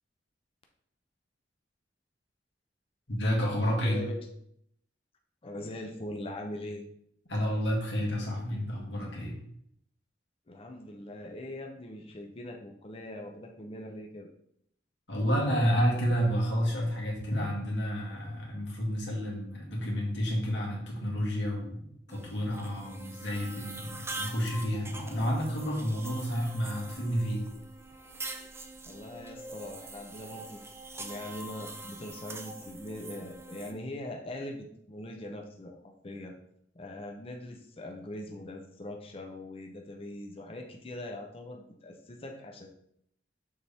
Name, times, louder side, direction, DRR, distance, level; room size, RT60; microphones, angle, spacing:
voice 1, 3.1-4.0 7.3-9.4 15.1-27.5, equal, 85° left, -2 dB, 1.9 m, -30 dB
voice 2, 3.8-4.3 5.4-6.8 10.5-14.3 28.8-36.3 36.7-42.7, left 1 dB, 35° left, 3 dB, 0.6 m, -41 dB
sound 1, 22.1-33.7, right 2 dB, 15° right, 0.6 m, -44 dB
6.6 x 4.2 x 3.5 m, 0.72 s
head